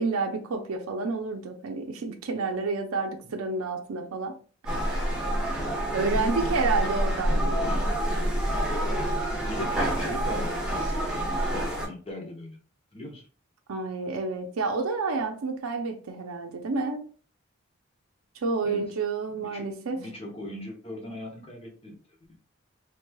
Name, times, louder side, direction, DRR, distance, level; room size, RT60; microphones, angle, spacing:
voice 1, 0.0-4.4 4.7-4.9 5.9-8.0 8.5-8.8 13.7-17.1 18.4-20.1, right 4 dB, 85° right, 0.5 m, -30 dB
sound 1, 4.7-11.9, right 1 dB, 5° right, 0.9 m, -27 dB
voice 2, 9.4-12.6 12.9-13.3 18.6-18.8 19.4-19.6 20.0-22.0, left 1 dB, 25° left, 0.8 m, -39 dB
3.3 x 3.1 x 2.2 m
head